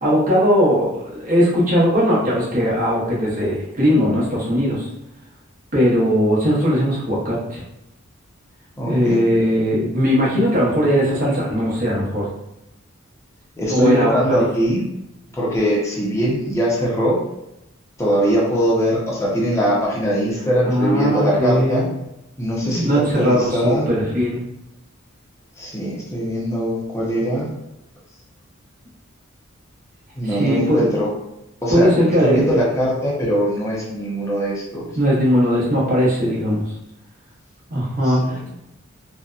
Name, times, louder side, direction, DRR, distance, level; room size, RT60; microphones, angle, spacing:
voice 1, 0.0-4.9 5.7-7.6 8.8-12.3 13.7-14.4 20.7-21.8 22.6-24.4 30.2-30.8 31.7-32.7 35.0-36.6 37.7-38.5, equal, 40° right, -6 dB, 0.8 m, -19 dB
voice 2, 8.8-9.2 13.6-14.8 15.3-17.2 18.0-21.8 22.4-23.9 25.6-27.5 30.2-31.1 31.6-31.9 32.2-34.9 38.0-38.4, equal, 15° left, -5 dB, 0.6 m, -21 dB
2.7 x 2.1 x 2.4 m, 0.87 s
head